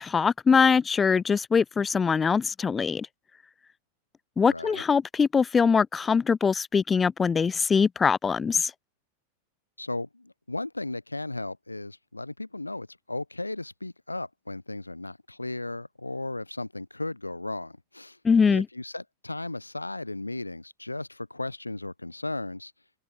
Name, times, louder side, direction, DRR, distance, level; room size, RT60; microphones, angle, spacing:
voice 1, 0.0-3.1 4.4-8.7 18.2-18.7, left 5 dB, 15° left, 0.9 m, -22 dB
voice 2, 4.4-4.8 9.8-18.2 18.5-22.7, left 2 dB, 85° left, 2.9 m, -35 dB
open air
figure-of-eight pair, 90°, 0 cm